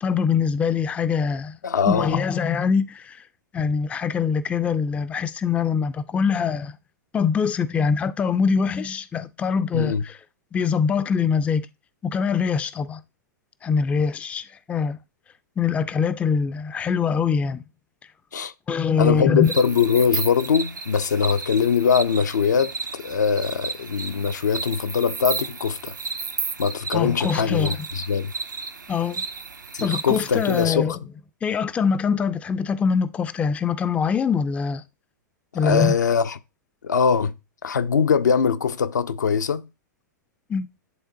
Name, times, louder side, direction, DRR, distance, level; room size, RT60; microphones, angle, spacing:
voice 1, 0.0-1.6 1.9-3.2 3.5-6.8 7.1-10.2 10.5-11.7 12.0-13.0 13.6-15.0 15.6-17.6 18.7-19.5 26.9-27.8 28.9-29.2 29.8-30.9 31.4-34.8 35.5-35.9 40.5-40.7, left 6 dB, 15° left, 0.3 m, -23 dB
voice 2, 1.6-2.2 9.7-10.0 18.3-18.5 19.0-25.9 26.6-28.3 29.7-31.0 35.6-36.4 36.8-37.3 37.6-39.7, left 6 dB, 70° left, 0.5 m, -22 dB
sound 1, 19.4-30.7, right 4 dB, 80° right, 0.6 m, -33 dB
10.5 x 3.7 x 2.6 m
figure-of-eight pair, 100°, 10 cm